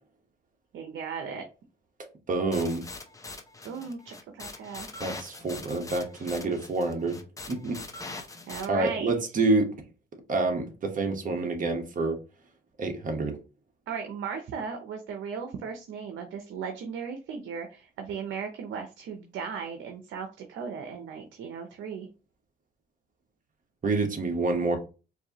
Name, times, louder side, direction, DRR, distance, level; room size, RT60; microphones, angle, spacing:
voice 1, 0.7-1.4 3.6-4.9 8.5-9.1 13.9-22.1, right 6 dB, 75° right, 0.7 m, -36 dB
voice 2, 2.3-2.8 5.0-7.2 7.5-7.8 8.7-9.7 10.3-12.2 12.8-13.4 23.8-24.8, right 3 dB, 40° right, 1.2 m, -27 dB
sound 1, 2.5-8.7, left 3 dB, 15° left, 0.8 m, -42 dB
4.5 x 2.7 x 2.9 m
cardioid pair, 90°, 20 cm